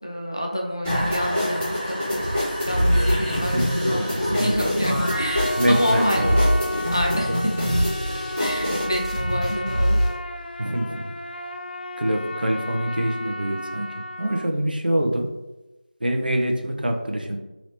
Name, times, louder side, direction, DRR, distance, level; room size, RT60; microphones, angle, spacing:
voice 1, 0.0-2.2 2.7-6.5 6.9-7.7 8.4-10.0, equal, 30° left, 0 dB, 0.4 m, -28 dB
sound 1, 0.8-8.8, equal, 15° right, 0.8 m, -26 dB
sound 2, 2.2-6.6 6.9-10.2, equal, 40° right, 1.3 m, -26 dB
voice 2, 3.5-4.9 5.6-6.3 10.6-11.1 12.0-13.9 14.2-15.3 16.0-17.4, right 1 dB, 70° right, 2 dB, 0.6 m, -25 dB
Trumpet, 5.0-14.5, left 1 dB, 90° left, 0.4 m, -34 dB
3.3 x 2.9 x 2.8 m, 1.0 s
figure-of-eight pair, 180°, 5 cm